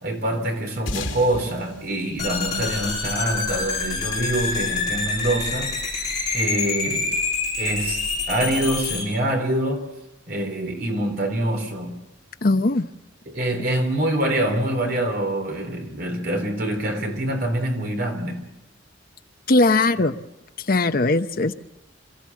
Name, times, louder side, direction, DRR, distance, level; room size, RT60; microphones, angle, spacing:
voice 1, 0.0-5.7 6.3-7.2 7.6-9.9 10.3-11.9 13.3-18.4, right 1 dB, 50° right, 3.7 m, -25 dB
sound 1, 0.9-3.6, left 2 dB, 85° left, 2.4 m, -35 dB
sound 2, 2.2-9.0, left 4 dB, 20° left, 7.0 m, -26 dB
voice 2, 12.4-12.8 19.5-20.1 20.7-21.5, left 2 dB, 50° left, 0.8 m, -19 dB
27.5 x 14.0 x 7.4 m
head